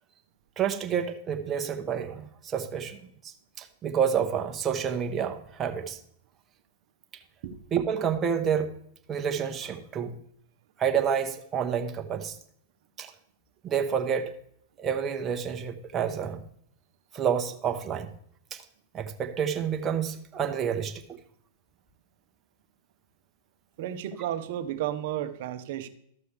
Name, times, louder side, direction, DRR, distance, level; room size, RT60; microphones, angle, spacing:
voice 1, 0.6-6.0 7.7-8.7 9.1-10.1 10.8-12.3 13.0-13.1 13.6-14.3 14.8-16.4 17.1-18.1 18.5-18.6 18.9-20.9, right 7 dB, 25° right, 4 dB, 1.0 m, -29 dB
voice 2, 23.8-25.9, right 11 dB, 55° right, 11 dB, 0.8 m, -32 dB
13.0 x 6.8 x 3.4 m, 0.68 s
hypercardioid pair, 100°, 0 cm